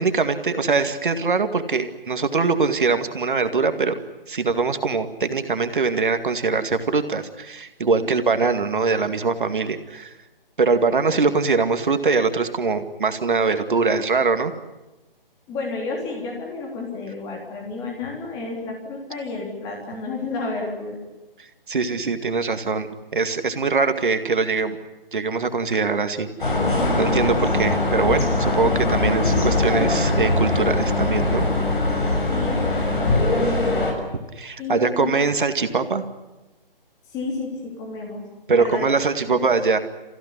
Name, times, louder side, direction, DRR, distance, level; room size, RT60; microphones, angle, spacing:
voice 1, 0.0-4.0 4.3-10.1 10.6-14.5 21.7-22.9 23.1-24.8 25.1-26.3 27.0-31.5 34.1-36.0 38.5-39.8, right 4 dB, 60° right, 9 dB, 2.2 m, -22 dB
voice 2, 15.5-21.0 32.3-33.9 34.6-35.1 37.1-38.2 38.5-38.8 39.2-39.3, left 3 dB, 10° left, 0 dB, 3.5 m, -31 dB
sound 1, 26.4-33.9, left 2 dB, 60° left, 6.5 m, -21 dB
28.0 x 15.5 x 9.9 m, 1.1 s
figure-of-eight pair, 155°, 29 cm